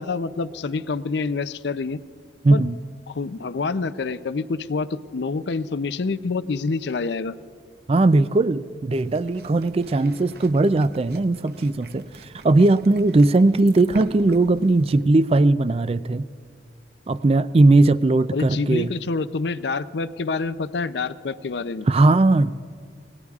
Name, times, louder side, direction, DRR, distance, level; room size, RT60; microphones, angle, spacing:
voice 1, 0.0-2.0 2.5-2.6 3.1-7.3 18.3-21.9, left 4 dB, 65° left, 14 dB, 0.5 m, -27 dB
voice 2, 2.4-2.7 7.9-16.3 17.1-18.9 21.9-22.5, right 2 dB, 30° right, 15 dB, 0.3 m, -18 dB
sound 1, 8.9-15.0, right 2 dB, 55° right, 0.8 m, -43 dB
27.5 x 19.0 x 2.4 m, 2.2 s
head